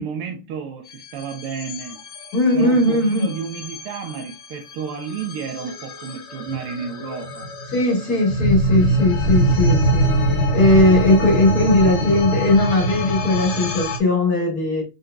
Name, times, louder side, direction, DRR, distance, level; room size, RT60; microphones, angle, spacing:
voice 1, 0.0-2.0 2.5-7.5, right 6 dB, 80° right, 1.7 m, -31 dB
sound 1, 0.9-14.0, right 1 dB, 80° left, 0.6 m, -24 dB
voice 2, 2.3-3.3 7.7-10.1 10.5-14.8, left 1 dB, 50° left, 1.6 m, -18 dB
5.4 x 3.9 x 2.3 m
omnidirectional pair, 2.4 m